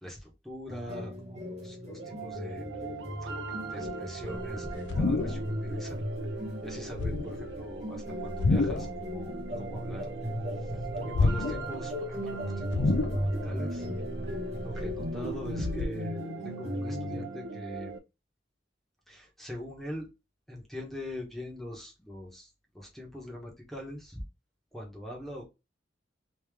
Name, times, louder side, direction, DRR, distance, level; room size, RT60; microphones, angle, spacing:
voice 1, 0.0-2.8 3.7-6.0 6.6-10.1 10.6-10.7 11.0-13.9 14.6-18.0 19.1-20.1 20.5-24.2 24.7-25.4, equal, ahead, -2 dB, 1.1 m, -42 dB
sound 1, 0.7-17.3, left 1 dB, 35° right, 1.1 m, -37 dB
sound 2, 2.0-18.0, right 5 dB, 85° right, 0.6 m, -41 dB
sound 3, 4.3-5.7 6.0-6.3 6.8-7.5 8.2-9.0 9.3-10.3 10.6-11.8 12.1-12.2 12.7-13.5 13.9-15.9, left 3 dB, 75° left, 0.4 m, -29 dB
3.2 x 3.0 x 3.4 m, 0.26 s
head